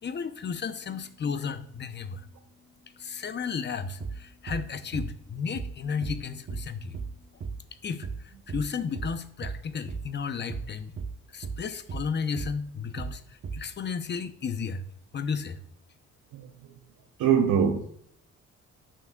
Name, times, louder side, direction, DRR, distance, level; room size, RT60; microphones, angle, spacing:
voice 1, 0.0-2.3 2.9-7.0 7.8-10.9 11.3-14.8 15.1-15.6, left 6 dB, 35° left, 0.7 m, -33 dB
sound 1, 4.0-4.2 4.5-4.7 4.9-5.1 5.5-5.7 6.0-6.2 6.5-6.7 6.9-7.1 7.4-7.6 8.0-8.2 8.5-8.7 8.9-9.1 9.4-9.6 9.9-10.1 10.5-10.7 11.0-11.2 11.4-11.6 11.9-12.1 12.3-12.5 13.0-13.2 13.4-13.6, right 5 dB, 40° right, 0.9 m, -35 dB
voice 2, 17.2-17.9, right 7 dB, 80° right, 0.8 m, -23 dB
9.0 x 6.0 x 2.3 m
cardioid pair, 90°, 30 cm